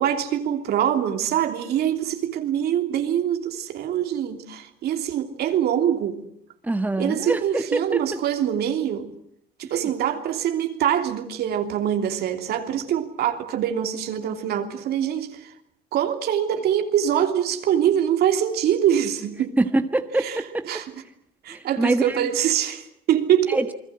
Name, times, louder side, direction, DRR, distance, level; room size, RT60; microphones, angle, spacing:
voice 1, 0.0-6.2 7.0-9.1 9.6-15.5 15.9-19.5 20.2-20.8 21.4-23.6, right 10 dB, 70° right, 3.1 m, -24 dB
voice 2, 6.6-8.2 19.6-20.6 21.5-22.3 23.5-23.7, right 2 dB, 10° right, 1.5 m, -24 dB
28.5 x 21.0 x 7.7 m
cardioid pair, 110°, 17 cm